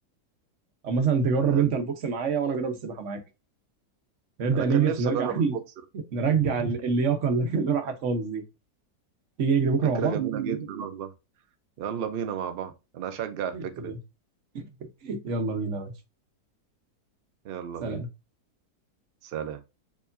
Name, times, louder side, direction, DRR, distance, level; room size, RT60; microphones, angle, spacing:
voice 1, 0.8-3.2 4.4-5.5 6.1-8.4 9.4-10.2 13.5-13.9 14.5-14.7 15.0-15.9 17.8-18.1, right 5 dB, 55° right, 1.0 m, -25 dB
voice 2, 1.3-1.8 4.5-5.6 9.8-11.1 11.8-14.0 17.4-18.0 19.2-19.6, right 8 dB, 90° right, 0.5 m, -32 dB
4.6 x 3.0 x 2.5 m
omnidirectional pair, 1.7 m